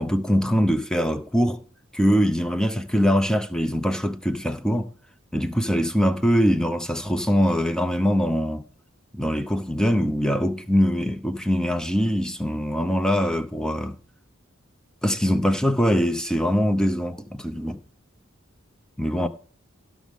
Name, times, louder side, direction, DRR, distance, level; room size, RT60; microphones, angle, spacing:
voice 1, 0.0-1.6 1.9-4.9 5.3-8.6 9.1-14.0 15.0-17.8 19.0-19.3, equal, 5° left, 0.7 m, -23 dB
16.0 x 6.3 x 3.6 m
head